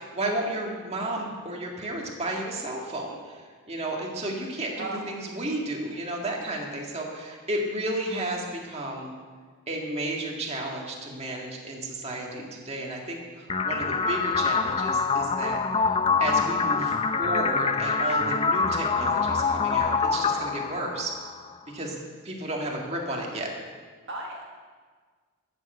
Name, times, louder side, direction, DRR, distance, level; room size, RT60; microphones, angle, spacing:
voice 1, 0.0-9.1 9.7-21.1 21.7-23.5, right 1 dB, 30° right, -1 dB, 2.0 m, -33 dB
sound 1, 13.5-21.5, left 4 dB, 25° left, 0.5 m, -25 dB
voice 2, 24.1-24.4, right 2 dB, 55° right, -1 dB, 1.6 m, -36 dB
12.5 x 7.9 x 7.9 m, 1.5 s
head